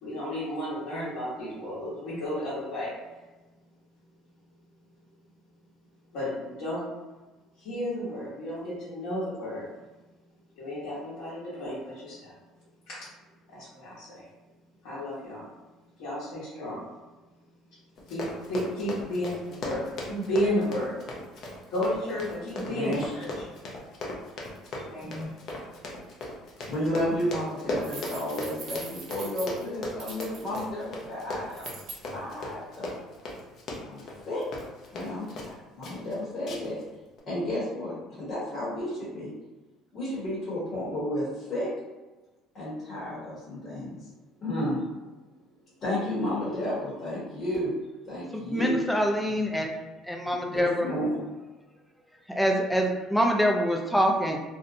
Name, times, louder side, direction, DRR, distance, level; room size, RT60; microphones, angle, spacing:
voice 1, 0.0-2.9 6.1-6.9 7.6-9.7 10.6-12.3 12.9-13.1 13.5-14.3 14.8-15.4 16.0-16.8 18.1-20.9 21.7-23.3 24.9-25.3, left 1 dB, 80° left, -10 dB, 1.1 m, -32 dB
Run, 18.0-35.5 35.8-36.1 36.5-36.8 37.2-37.3, left 1 dB, 55° left, 0.6 m, -37 dB
voice 2, 22.5-23.0 25.0-25.3 26.7-31.7 32.1-32.9 33.8-34.5 34.9-36.8 37.3-39.3 39.9-41.7 42.5-44.0 44.4-44.8 45.8-47.7 48.0-48.8 50.5-51.2, left 1 dB, 40° left, -9 dB, 1.1 m, -32 dB
sound 1, 27.8-30.6 31.5-32.0, right 3 dB, 60° right, 0.9 m, -42 dB
voice 3, 48.3-49.7 50.0-50.9 52.3-54.4, equal, ahead, 1 dB, 0.4 m, -25 dB
2.6 x 2.0 x 2.6 m, 1.2 s
cardioid pair, 115°, 0 cm